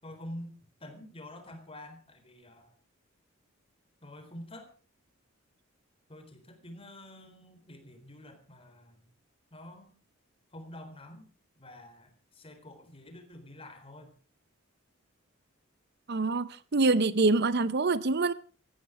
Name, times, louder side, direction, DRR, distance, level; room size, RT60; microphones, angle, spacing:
voice 1, 0.0-2.8 4.0-4.7 6.1-9.1 9.5-9.9 10.5-11.3 11.6-14.1, left 1 dB, 30° left, 4.1 m, -47 dB
voice 2, 16.1-18.3, right 3 dB, 50° right, 0.7 m, -25 dB
18.0 x 14.5 x 4.9 m
head